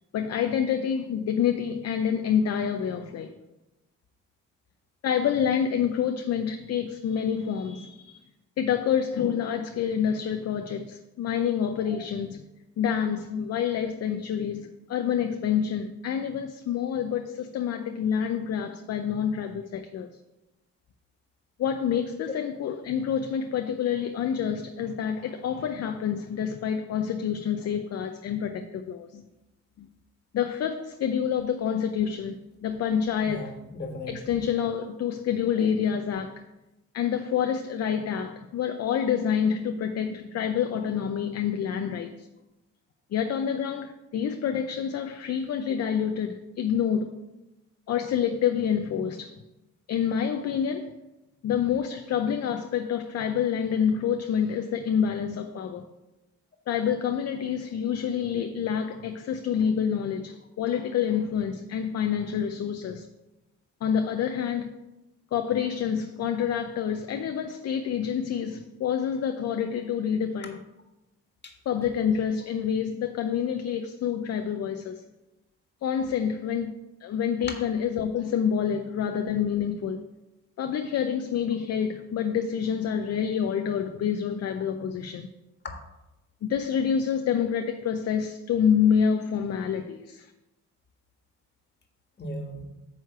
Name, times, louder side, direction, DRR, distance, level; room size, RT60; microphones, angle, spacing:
voice 1, 0.1-3.3 5.0-8.2 8.6-12.5 12.8-20.1 21.6-29.2 29.8-29.9 30.3-33.6 34.1-36.4 36.9-42.3 43.1-47.1 47.9-49.3 49.9-50.9 51.4-55.9 56.7-63.1 63.8-64.7 65.3-70.6 71.7-75.0 75.8-80.1 80.6-85.3 86.4-90.3, left 8 dB, 55° left, 0.6 m, -27 dB
voice 2, 33.2-34.4 35.6-35.7 71.4-71.6 85.6-85.7 92.2-92.6, left 1 dB, 35° left, 1.6 m, -37 dB
9.1 x 3.2 x 6.7 m
cardioid pair, 90°, 30 cm